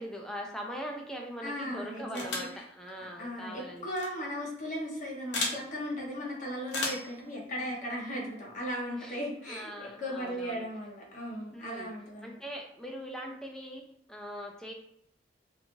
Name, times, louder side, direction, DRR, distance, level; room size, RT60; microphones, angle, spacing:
voice 1, 0.0-3.9 7.6-7.7 9.0-10.6 11.5-11.9 12.2-13.8 14.1-14.7, equal, 5° left, 1 dB, 0.4 m, -41 dB
voice 2, 1.4-2.5 3.2-12.4, equal, 45° left, -3 dB, 0.8 m, -37 dB
sound 1, 2.1-2.6 3.9-4.1 5.3-5.6 6.7-7.1, left 2 dB, 75° left, 0.7 m, -33 dB
3.0 x 2.4 x 2.5 m, 0.73 s
head